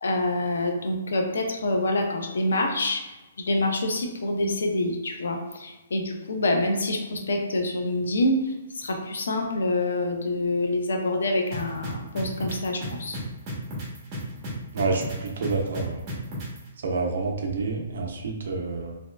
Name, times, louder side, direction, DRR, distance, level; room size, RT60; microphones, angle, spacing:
voice 1, 0.0-3.0 3.4-8.4 8.8-13.2, left 1 dB, 85° left, 3 dB, 0.6 m, -26 dB
sound 1, 11.5-16.6, left 1 dB, 20° right, 1.0 m, -34 dB
voice 2, 14.7-16.0 16.8-18.9, right 3 dB, 65° right, 1 dB, 0.7 m, -28 dB
3.1 x 2.7 x 3.2 m, 1.1 s
hypercardioid pair, 165°, 0 cm